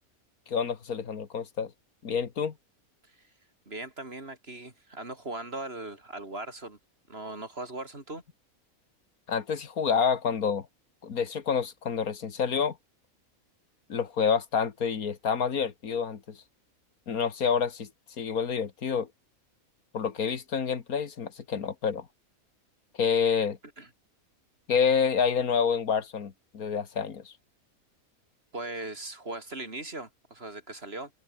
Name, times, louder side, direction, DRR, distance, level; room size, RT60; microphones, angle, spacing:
voice 1, 0.5-1.7 2.0-2.5 9.3-10.7 11.0-12.8 13.9-16.4 17.1-17.9 18.2-19.1 19.9-22.1 23.0-23.6 24.7-27.3, left 6 dB, 85° left, 2.1 m, -28 dB
voice 2, 3.7-6.8 7.1-8.2 23.8-23.9 28.5-31.1, right 2 dB, 45° right, 4.1 m, -39 dB
open air
omnidirectional pair, 1.5 m